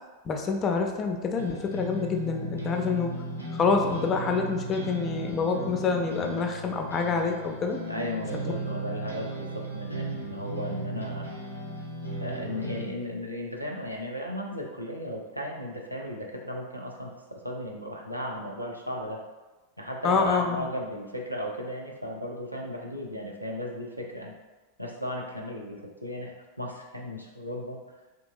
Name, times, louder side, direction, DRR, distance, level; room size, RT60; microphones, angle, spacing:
voice 1, 0.2-3.1 3.6-7.8 8.3-8.4 20.0-20.7, left 5 dB, 25° left, 3 dB, 0.3 m, -27 dB
sound 1, 1.4-12.9, right 1 dB, 90° left, 0.5 m, -36 dB
voice 2, 7.9-11.3 12.2-19.2 19.8-24.3 24.8-27.8, equal, 90° right, -1 dB, 0.4 m, -35 dB
2.7 x 2.5 x 2.5 m, 1.2 s
figure-of-eight pair, 90°, 0 cm